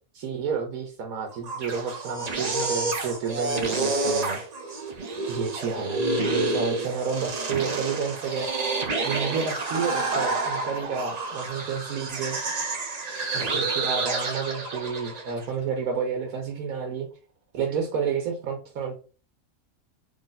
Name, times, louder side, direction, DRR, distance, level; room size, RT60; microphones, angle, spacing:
voice 1, 0.1-4.4 5.3-8.7 9.0-12.4 13.3-17.1 17.5-18.9, right 6 dB, 90° right, 2 dB, 1.2 m, -30 dB
sound 1, 1.3-15.4, right 3 dB, 45° right, 0.5 m, -29 dB
3.3 x 2.6 x 3.9 m, 0.36 s
omnidirectional pair, 1.4 m